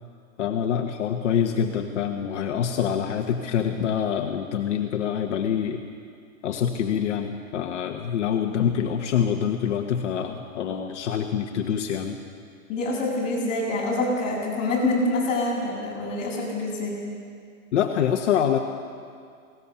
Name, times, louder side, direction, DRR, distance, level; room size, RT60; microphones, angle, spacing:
voice 1, 0.4-5.8 6.4-12.2 17.7-18.6, left 8 dB, 55° left, 3 dB, 1.4 m, -25 dB
voice 2, 12.7-17.0, left 2 dB, 15° left, -6 dB, 6.5 m, -26 dB
20.5 x 18.5 x 6.9 m, 2.2 s
hypercardioid pair, 170°, 42 cm